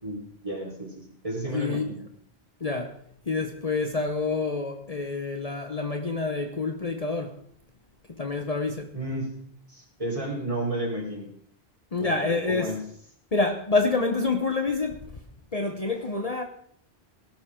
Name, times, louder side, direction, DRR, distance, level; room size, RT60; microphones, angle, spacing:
voice 1, 0.0-2.0 8.9-9.4 9.7-11.3 12.0-12.8, right 1 dB, 30° right, 4.5 m, -32 dB
voice 2, 1.5-1.9 2.6-3.0 3.3-7.4 8.1-8.9 11.9-12.7 13.3-15.1 15.5-16.4, left 3 dB, 35° left, 1.1 m, -27 dB
19.0 x 12.0 x 3.8 m
omnidirectional pair, 1.1 m